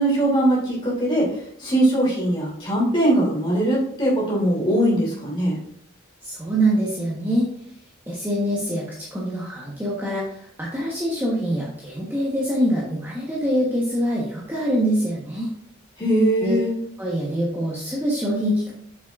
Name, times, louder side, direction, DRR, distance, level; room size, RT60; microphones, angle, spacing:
voice 1, 0.0-5.6 16.0-16.7, right 1 dB, 25° left, -4 dB, 3.0 m, -21 dB
voice 2, 6.2-7.5 8.1-15.5 16.4-16.6 17.0-18.7, equal, 10° right, -5 dB, 1.2 m, -24 dB
7.2 x 7.2 x 2.5 m, 0.64 s
head